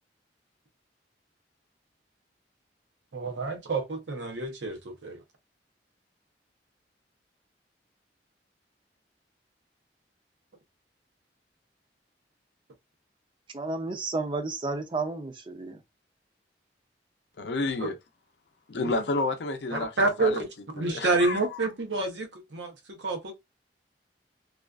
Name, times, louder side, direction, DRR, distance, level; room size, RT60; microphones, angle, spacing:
voice 1, 3.1-5.2 17.8-17.9 18.8-19.1 19.7-23.3, right 3 dB, 90° right, 0.7 m, -29 dB
voice 2, 13.5-15.8, right 3 dB, 30° right, 0.4 m, -32 dB
voice 3, 17.4-17.9 18.7-19.9 20.2-20.4 20.8-21.4, left 3 dB, 70° left, 0.5 m, -30 dB
2.4 x 2.3 x 2.3 m
head